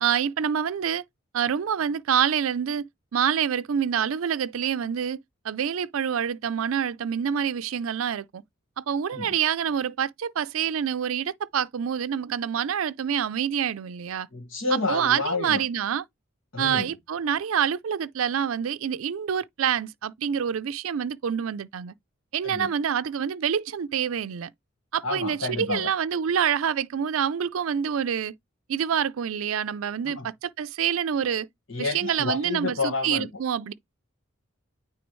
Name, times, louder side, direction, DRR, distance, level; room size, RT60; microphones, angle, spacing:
voice 1, 0.0-1.0 1.3-2.9 3.1-5.2 5.4-8.4 8.8-14.3 14.7-16.0 16.6-21.9 22.3-24.5 24.9-28.3 28.7-31.5 31.8-33.7, right 8 dB, 85° right, 0.4 m, -27 dB
voice 2, 14.3-15.6 16.5-16.9 22.4-22.7 25.0-25.9 30.0-30.3 31.7-33.3, left 3 dB, 70° left, 1.7 m, -30 dB
9.4 x 3.3 x 3.1 m
head